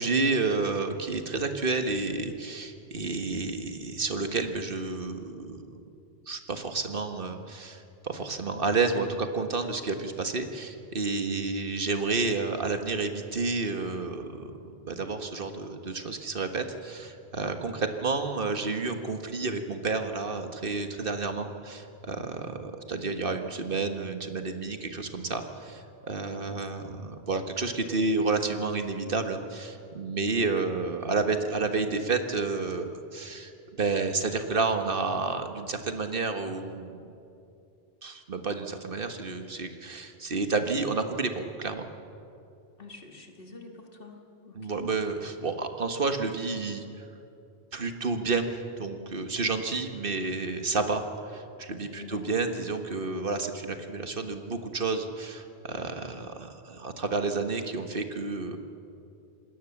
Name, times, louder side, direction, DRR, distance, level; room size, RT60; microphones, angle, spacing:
voice 1, 0.0-5.8 6.3-37.1 38.0-41.9 44.5-47.0 47.7-48.5 48.8-58.7, right 3 dB, 55° right, 6 dB, 1.7 m, -30 dB
voice 2, 30.2-30.7 42.8-44.8 51.9-52.5, left 3 dB, 55° left, 3 dB, 2.3 m, -47 dB
26.5 x 20.0 x 7.2 m, 2.7 s
omnidirectional pair, 1.1 m